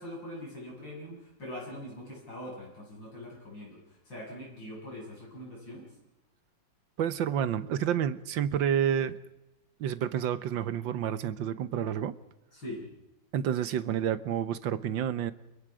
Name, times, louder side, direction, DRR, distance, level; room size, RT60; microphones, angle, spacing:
voice 1, 0.0-5.9 12.5-12.9, left 1 dB, 90° left, -3 dB, 8.1 m, -42 dB
voice 2, 7.0-9.2 9.8-12.1 13.3-15.3, right 9 dB, 85° right, 14 dB, 1.7 m, -29 dB
29.5 x 25.5 x 5.0 m, 0.97 s
omnidirectional pair, 2.0 m